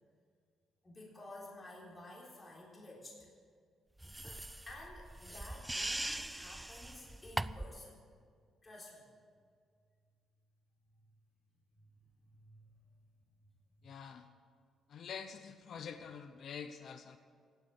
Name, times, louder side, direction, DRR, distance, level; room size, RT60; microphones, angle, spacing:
voice 1, 0.8-3.3 4.2-8.0 8.6-9.1 12.3-12.7 14.0-14.1, left 2 dB, 25° left, -3 dB, 3.7 m, -52 dB
sound 1, 4.0-7.8, right 1 dB, 10° right, 0.4 m, -41 dB
voice 2, 13.8-14.3 14.9-17.2, left 7 dB, 60° left, 9 dB, 0.8 m, -46 dB
17.5 x 8.1 x 8.2 m, 2.1 s
cardioid pair, 90°, 0 cm